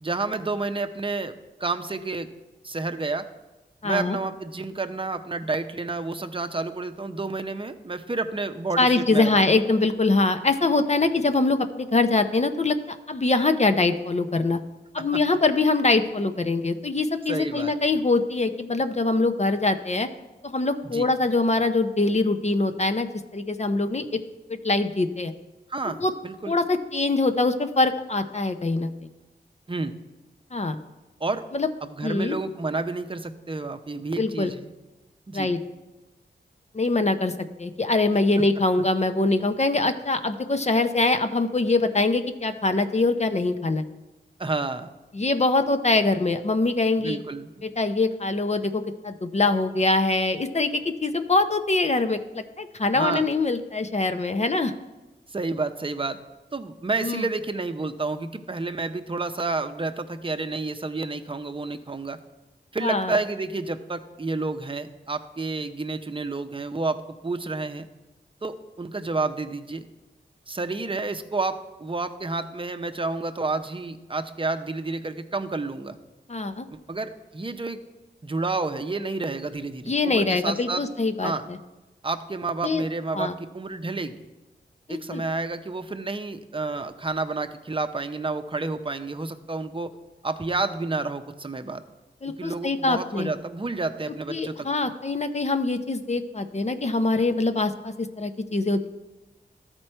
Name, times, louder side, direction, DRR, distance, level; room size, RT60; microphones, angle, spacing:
voice 1, 0.0-2.3 2.6-3.3 3.8-9.4 15.0-15.1 17.3-17.7 20.8-21.1 25.7-26.6 29.7-29.9 31.2-31.5 31.8-34.7 35.3-35.5 44.4-44.9 47.0-47.7 52.9-53.2 55.3-56.2 56.5-62.2 62.7-67.9 68.4-69.8 70.5-76.0 76.7-77.8 78.2-80.8 81.2-81.4 82.0-84.2 84.9-89.9 90.2-91.8 92.4-94.7, right 3 dB, 30° right, 8 dB, 0.7 m, -30 dB
voice 2, 3.8-4.2 8.8-14.6 14.9-20.1 20.4-24.2 24.5-25.3 25.9-26.1 26.5-28.9 30.5-30.8 31.5-31.7 32.0-32.4 34.2-34.5 35.3-35.6 36.7-37.3 37.6-43.8 45.1-47.2 47.6-54.7 57.0-57.2 62.8-63.2 76.3-76.7 79.9-81.6 82.6-82.8 83.1-83.3 84.9-85.2 92.2-93.3 94.3-98.9, left 3 dB, 35° left, 8 dB, 0.6 m, -23 dB
13.0 x 4.5 x 4.4 m, 1.1 s
cardioid pair, 45°, 19 cm